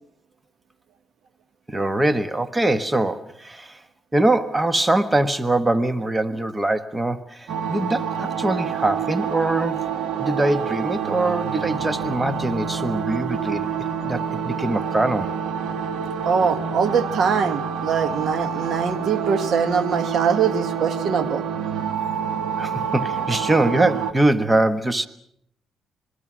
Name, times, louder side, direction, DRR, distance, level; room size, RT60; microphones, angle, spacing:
voice 1, 1.7-3.8 4.1-9.9 10.2-13.7 14.0-15.3 22.6-25.1, right 2 dB, 15° right, 11 dB, 1.3 m, -23 dB
sound 1, 7.5-24.1, right 7 dB, 80° right, 1.8 m, -27 dB
voice 2, 16.2-21.4, right 6 dB, 60° right, 11 dB, 1.3 m, -22 dB
26.5 x 21.0 x 6.2 m, 0.73 s
cardioid pair, 90°, 0 cm